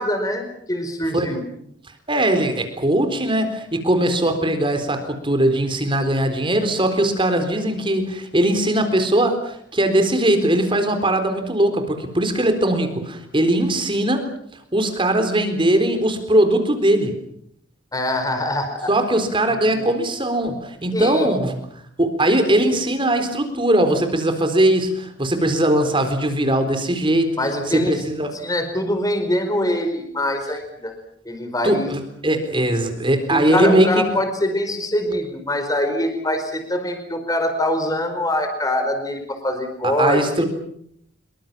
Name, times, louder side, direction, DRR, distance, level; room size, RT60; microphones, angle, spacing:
voice 1, 0.0-1.4 17.9-18.9 19.5-19.9 20.9-21.3 27.4-28.0 28.3-30.9 31.2-31.9 33.3-40.2, left 1 dB, 20° left, 6 dB, 4.7 m, -24 dB
voice 2, 2.1-14.3 14.7-17.2 18.9-21.5 22.0-27.4 27.7-28.3 31.6-34.0 39.8-40.4, right 1 dB, 25° right, 7 dB, 3.9 m, -20 dB
26.5 x 23.5 x 7.4 m, 0.70 s
head